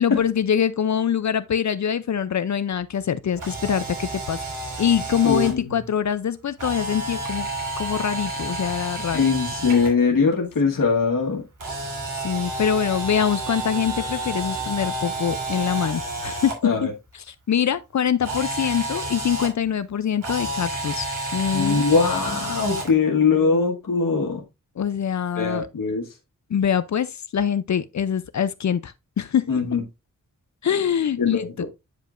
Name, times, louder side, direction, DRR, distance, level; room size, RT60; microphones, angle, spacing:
voice 1, 0.0-4.4 4.8-7.5 7.8-9.3 12.2-16.5 17.3-21.1 21.3-21.8 24.8-25.7 26.5-29.5 30.6-31.5, left 8 dB, 60° left, 0.5 m, -24 dB
Camera, 3.3-5.5 6.6-9.9 11.6-16.5 18.2-19.5 20.2-22.9, right 2 dB, 70° right, 3.2 m, -30 dB
voice 2, 5.2-5.8 9.1-11.4 16.6-16.9 21.5-24.4 25.4-26.1 29.5-29.8 31.2-31.7, left 5 dB, 85° left, 1.6 m, -21 dB
9.4 x 5.2 x 2.5 m
wide cardioid pair, 120°, 32 cm